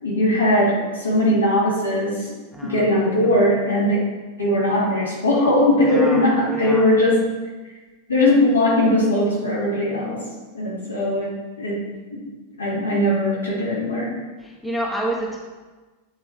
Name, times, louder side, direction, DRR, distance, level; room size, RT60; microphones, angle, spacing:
voice 1, 0.0-2.3 2.6-4.0 4.4-7.3 8.1-10.2 10.5-11.8 12.1-12.2 12.6-14.1, left 1 dB, 75° left, -5 dB, 2.3 m, -19 dB
voice 2, 2.5-2.9 3.3-3.4 5.8-6.2 6.5-6.9 14.4-15.4, right 1 dB, ahead, -3 dB, 1.3 m, -28 dB
8.4 x 4.2 x 4.6 m, 1.3 s
figure-of-eight pair, 90°, 0 cm